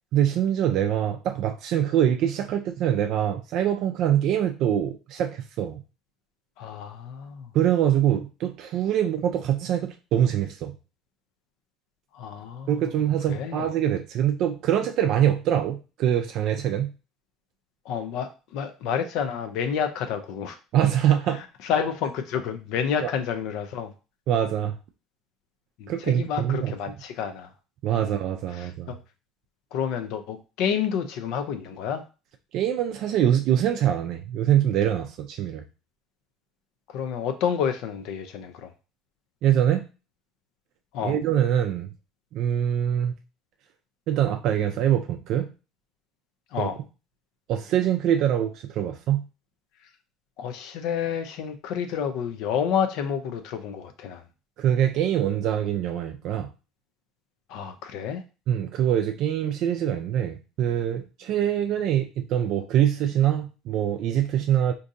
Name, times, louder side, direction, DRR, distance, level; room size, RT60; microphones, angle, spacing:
voice 1, 0.1-5.8 7.5-10.8 12.7-16.9 20.7-21.4 23.0-23.1 24.3-24.8 25.9-26.7 27.8-28.9 32.5-35.7 39.4-39.9 41.0-41.9 42.3-43.1 44.1-45.5 46.6-46.7 47.5-49.3 54.6-56.5 58.5-64.7, right 10 dB, 60° right, 6 dB, 0.3 m, -24 dB
voice 2, 6.6-7.5 12.1-12.8 13.3-13.7 17.9-20.6 21.6-23.9 25.8-27.5 27.9-28.1 28.5-29.0 29.7-32.0 36.9-38.7 40.9-41.2 46.5-46.8 50.4-54.2 57.5-58.2, left 7 dB, 70° left, 7 dB, 0.4 m, -29 dB
3.6 x 2.6 x 2.6 m, 0.32 s
cardioid pair, 125°, 0 cm